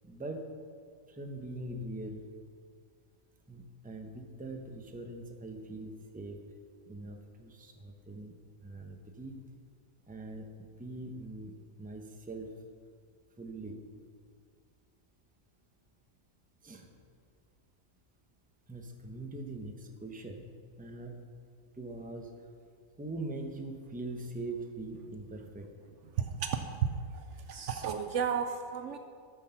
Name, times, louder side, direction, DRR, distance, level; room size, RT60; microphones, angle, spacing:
voice 1, 0.0-0.5 1.1-2.2 3.5-6.4 6.9-9.4 10.1-12.5 13.4-13.8 16.6-16.9 18.7-20.5 20.8-21.2 21.7-22.3 23.0-25.7, right 2 dB, 10° right, 3 dB, 0.7 m, -42 dB
voice 2, 26.1-29.0, right 7 dB, 70° right, 7 dB, 0.8 m, -33 dB
13.0 x 6.3 x 5.7 m, 2.1 s
omnidirectional pair, 1.4 m